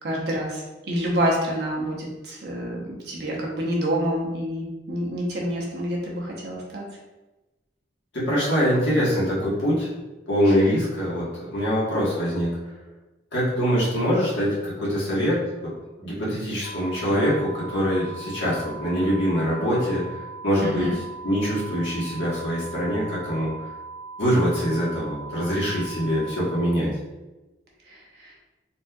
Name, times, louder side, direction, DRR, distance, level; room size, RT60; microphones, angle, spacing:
voice 1, 0.0-6.8 20.6-20.9 27.9-28.3, equal, 60° right, -2 dB, 0.8 m, -27 dB
voice 2, 8.1-9.9 10.3-12.6 13.3-15.7 16.0-20.9 21.2-23.5 24.2-26.9, equal, 75° left, -7 dB, 1.3 m, -24 dB
sound 1, 16.6-26.6, right 4 dB, 40° left, 0.6 m, -39 dB
4.1 x 2.6 x 2.3 m, 1.1 s
head